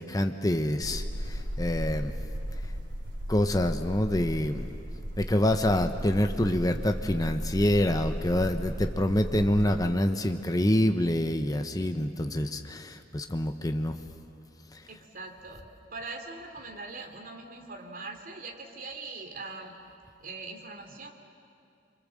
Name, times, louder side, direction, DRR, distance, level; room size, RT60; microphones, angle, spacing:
voice 1, 0.0-2.1 3.3-4.8 5.2-14.0 14.7-14.8, left 1 dB, 20° left, 6 dB, 0.8 m, -26 dB
sound 1, 0.8-9.9, equal, 85° right, 2.9 m, -36 dB
voice 2, 14.9-19.8 20.2-21.1, right 3 dB, 50° right, 3 dB, 2.9 m, -42 dB
28.0 x 24.0 x 7.6 m, 2.5 s
head